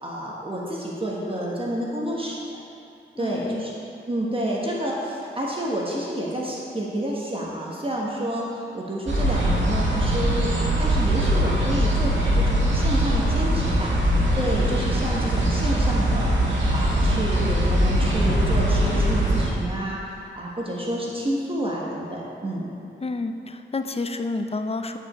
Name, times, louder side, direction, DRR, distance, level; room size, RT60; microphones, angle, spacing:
voice 1, 0.0-2.4 3.2-3.7 4.1-14.0 14.3-22.7, right 1 dB, 25° right, -4 dB, 1.4 m, -29 dB
voice 2, 3.2-3.7 23.0-25.0, left 3 dB, 30° left, 7 dB, 0.6 m, -29 dB
sound 1, 9.1-19.5, right 1 dB, 60° right, 2.0 m, -21 dB
9.2 x 5.1 x 4.4 m, 2.7 s
cardioid pair, 50°, 21 cm